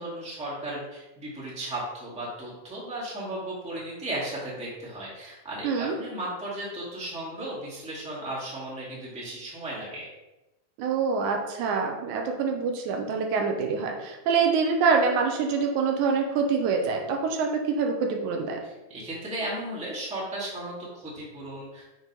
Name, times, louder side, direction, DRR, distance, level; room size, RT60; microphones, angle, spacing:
voice 1, 0.0-10.1 18.6-21.8, right 1 dB, 5° right, -6 dB, 1.1 m, -35 dB
voice 2, 5.6-6.0 10.8-18.6, right 5 dB, 90° right, 2 dB, 2.2 m, -25 dB
6.3 x 3.2 x 5.3 m, 1.0 s
omnidirectional pair, 3.4 m